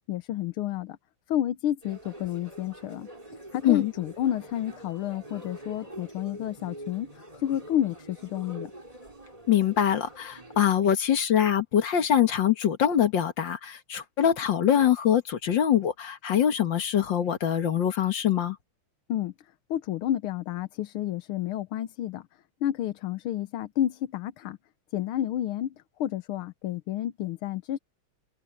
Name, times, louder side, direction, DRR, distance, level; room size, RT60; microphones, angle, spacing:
voice 1, 0.1-1.0 1.3-3.1 3.5-8.7 19.1-19.3 19.7-22.3 22.6-24.6 24.9-27.8, left 12 dB, 80° left, 1.7 m, -30 dB
sound 1, 1.8-10.6, right 1 dB, 15° right, 4.4 m, -45 dB
voice 2, 9.5-18.6, left 9 dB, 60° left, 2.2 m, -24 dB
omnidirectional pair, 2.3 m